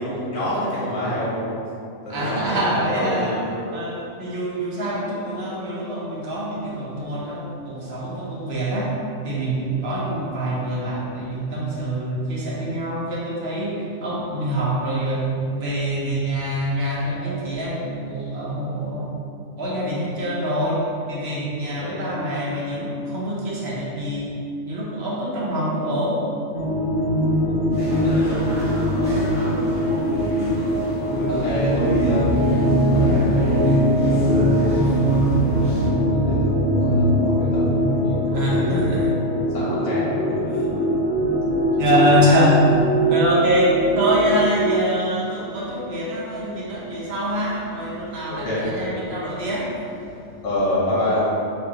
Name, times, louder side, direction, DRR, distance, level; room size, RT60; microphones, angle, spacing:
voice 1, 0.0-1.5 2.0-2.6 2.9-3.7 21.7-21.9 27.4-30.5 31.0-34.9 35.7-38.8 39.5-40.8 41.8-42.1 48.3-48.9 50.4-51.4, left 1 dB, 90° left, -9 dB, 1.7 m, -28 dB
voice 2, 2.1-3.4 3.7-9.0 9.2-19.1 19.6-24.3 24.6-26.3 38.3-39.0 41.8-42.7 43.1-50.4, equal, 55° right, -5 dB, 1.1 m, -25 dB
sound 1, 26.5-44.8, equal, 55° left, 1.0 m, -21 dB
sound 2, 27.7-35.9, equal, 5° right, 1.2 m, -32 dB
6.6 x 2.4 x 2.9 m, 2.6 s
omnidirectional pair, 1.4 m